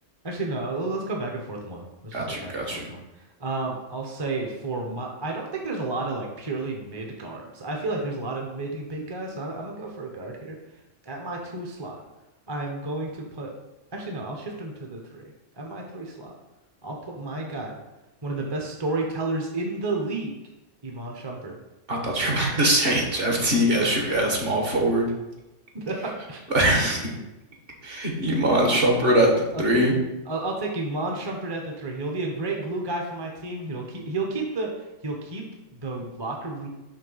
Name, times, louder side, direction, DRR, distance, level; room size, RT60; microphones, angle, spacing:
voice 1, 0.2-3.0 3.4-10.5 11.0-12.0 12.5-13.5 13.9-15.2 15.6-16.3 16.8-17.8 18.2-20.3 20.8-21.6 25.7-26.4 29.5-29.9 30.3-34.7 35.0-35.4 35.7-36.7, right 2 dB, 25° right, 0 dB, 0.6 m, -31 dB
voice 2, 2.1-2.9 21.9-25.1 26.5-27.2 27.8-29.9, right 1 dB, 50° right, -1 dB, 1.4 m, -22 dB
5.5 x 3.2 x 5.5 m, 1.0 s
omnidirectional pair, 1.3 m